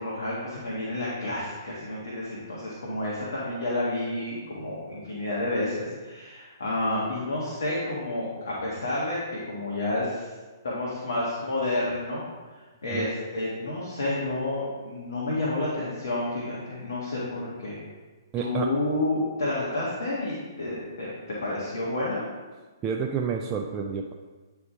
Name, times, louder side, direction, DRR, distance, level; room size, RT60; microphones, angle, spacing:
voice 1, 0.0-10.3 10.6-12.2 12.8-17.8 18.4-22.2, left 2 dB, 65° left, -6 dB, 1.5 m, -30 dB
voice 2, 18.3-18.8 22.8-24.1, right 6 dB, 20° right, 1 dB, 0.4 m, -29 dB
9.2 x 3.5 x 3.6 m, 1.3 s
figure-of-eight pair, 125°, 2 cm